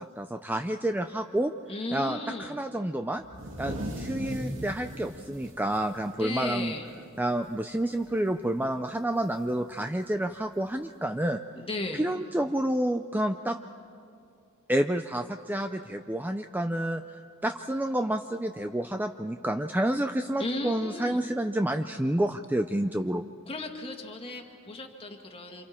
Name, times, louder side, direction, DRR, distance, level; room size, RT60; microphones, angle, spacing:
voice 1, 0.0-1.5 1.9-3.2 3.6-6.7 7.2-11.4 11.9-13.6 14.7-23.2, right 1 dB, 10° right, 7 dB, 0.4 m, -29 dB
voice 2, 1.7-2.6 6.2-6.9 11.6-12.0 20.4-21.2 23.5-25.7, left 2 dB, 25° left, 3 dB, 1.8 m, -35 dB
sound 1, 3.2-6.9 7.3-7.4 7.8-8.3 9.4-9.5 10.5-10.6, equal, 60° right, 2.6 m, -38 dB
28.0 x 27.5 x 4.4 m, 2.4 s
head